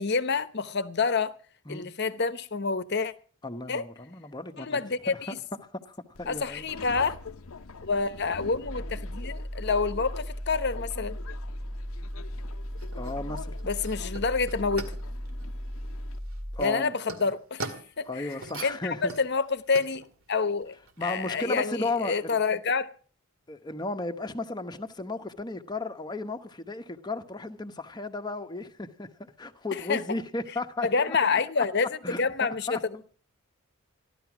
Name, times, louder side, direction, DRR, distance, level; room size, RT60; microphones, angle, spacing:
voice 1, 0.0-1.4 1.7-3.1 3.7-3.8 4.6-5.4 6.3-7.2 7.8-11.2 13.6-14.9 16.6-17.7 18.0-18.3 18.6-20.0 20.3-20.7 21.0-22.9 29.7-30.0 30.8-32.7, left 4 dB, 50° left, 0.9 m, -28 dB
voice 2, 3.4-4.8 5.1-5.2 5.7-6.7 12.9-13.6 16.5-17.0 18.1-19.1 21.0-22.4 23.5-31.4 32.0-33.0, left 2 dB, 20° left, 1.0 m, -35 dB
Subway metro underground, 6.1-16.2, left 4 dB, 80° left, 0.8 m, -45 dB
sound 1, 8.6-16.6, equal, 45° right, 1.3 m, -36 dB
sound 2, 12.1-21.3, right 3 dB, 85° right, 2.1 m, -43 dB
15.0 x 12.0 x 6.0 m
head